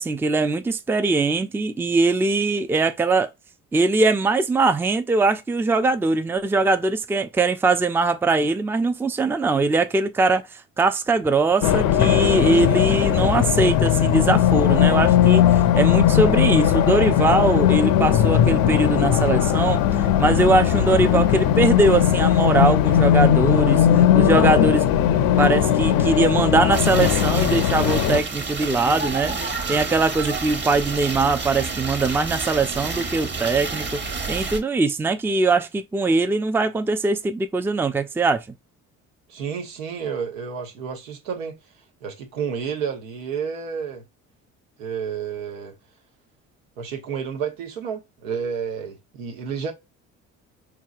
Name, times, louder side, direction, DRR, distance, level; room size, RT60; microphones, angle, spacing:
voice 1, 0.0-3.3 3.7-24.9 25.4-34.0 34.3-38.5, right 3 dB, 5° right, 0.4 m, -21 dB
Race car auto racing, 11.6-28.2, left 10 dB, 60° left, 0.6 m, -18 dB
sound 1, 26.7-34.6, right 4 dB, 25° right, 1.2 m, -29 dB
voice 2, 39.3-41.6 42.0-44.0 44.8-45.8 46.8-49.7, right 6 dB, 80° right, 0.9 m, -30 dB
4.7 x 2.8 x 2.4 m
hypercardioid pair, 55°, 40 cm